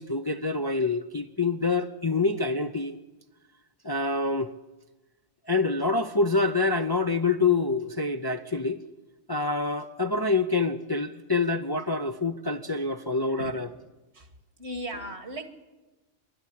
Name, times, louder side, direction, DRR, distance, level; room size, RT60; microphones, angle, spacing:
voice 1, 0.0-3.0 3.8-4.5 5.5-8.8 9.3-13.7, left 3 dB, 25° left, 7 dB, 0.5 m, -26 dB
voice 2, 13.3-13.6 14.1-14.3 14.6-15.5, right 1 dB, 70° right, 8 dB, 2.1 m, -37 dB
25.0 x 12.0 x 10.0 m, 1.1 s
omnidirectional pair, 1.2 m